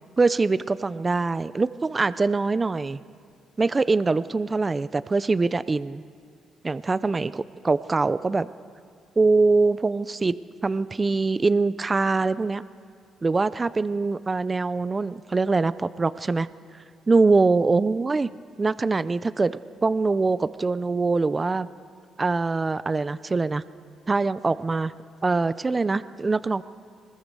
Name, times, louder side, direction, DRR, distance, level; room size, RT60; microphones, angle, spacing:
voice 1, 0.2-3.0 3.6-6.0 6.6-8.5 9.2-10.3 10.6-12.6 13.2-16.5 17.1-18.3 18.6-21.7 22.2-23.6 24.1-24.9 25.2-26.6, right 3 dB, 25° right, 15 dB, 0.5 m, -23 dB
21.0 x 20.5 x 6.8 m, 2.2 s
cardioid pair, 90°, 0 cm